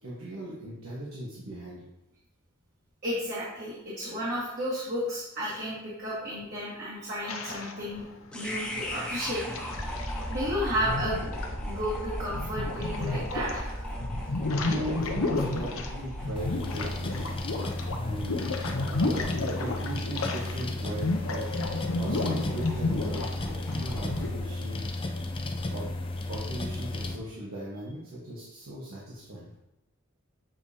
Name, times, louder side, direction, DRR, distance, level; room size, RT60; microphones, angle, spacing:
voice 1, 0.0-1.8 14.2-14.4 14.7-17.3 18.0-21.5 21.9-24.9 25.7-25.9 26.3-29.4, right 1 dB, 85° right, -7 dB, 1.4 m, -38 dB
voice 2, 3.0-8.0 8.3-9.4 10.3-11.2 11.7-13.7, equal, 50° right, -9 dB, 1.9 m, -32 dB
sound 1, 7.2-8.3 9.1-10.4 10.8-13.7 14.0-20.6 20.9-24.3, left 2 dB, 80° left, 0.8 m, -32 dB
sound 2, 8.3-24.5, equal, 5° left, 1.0 m, -38 dB
sound 3, 16.4-27.2, left 2 dB, 25° left, 0.5 m, -34 dB
7.6 x 4.9 x 2.8 m, 0.91 s
head